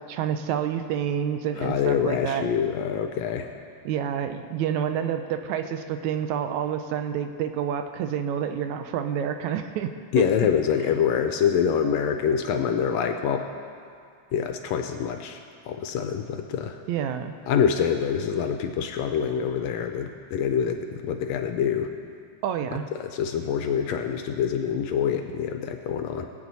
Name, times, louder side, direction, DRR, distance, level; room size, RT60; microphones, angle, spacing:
voice 1, 0.0-2.5 3.9-10.3 16.9-17.3 22.4-22.9, right 9 dB, 80° right, 8 dB, 1.9 m, -28 dB
voice 2, 1.6-3.5 10.1-13.4 14.3-15.4 15.7-16.8 17.5-21.9 23.0-26.3, left 7 dB, 75° left, 5 dB, 1.7 m, -25 dB
20.0 x 8.2 x 4.1 m, 2.3 s
omnidirectional pair, 3.4 m